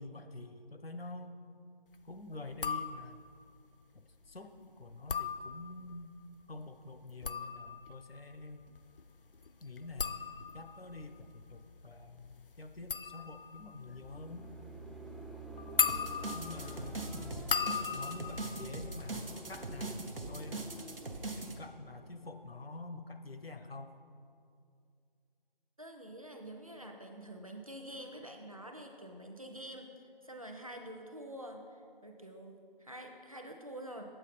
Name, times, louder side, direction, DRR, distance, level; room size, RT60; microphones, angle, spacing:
voice 1, 0.0-1.4 2.0-3.3 3.9-6.2 6.5-8.6 9.6-14.5 16.3-17.6 17.9-20.7 21.4-24.0, left 2 dB, 90° left, 8 dB, 0.8 m, -47 dB
sound 1, 2.5-3.4 4.9-6.0 7.0-19.7 20.0-20.5, left 6 dB, 65° left, 0.4 m, -38 dB
sound 2, 13.8-22.8, right 1 dB, ahead, 0.3 m, -50 dB
sound 3, 15.9-21.5, right 2 dB, 75° right, 1.0 m, -41 dB
voice 2, 25.8-34.0, right 1 dB, 40° right, 3 dB, 0.7 m, -47 dB
9.1 x 8.1 x 4.2 m, 2.4 s
figure-of-eight pair, 175°, 29 cm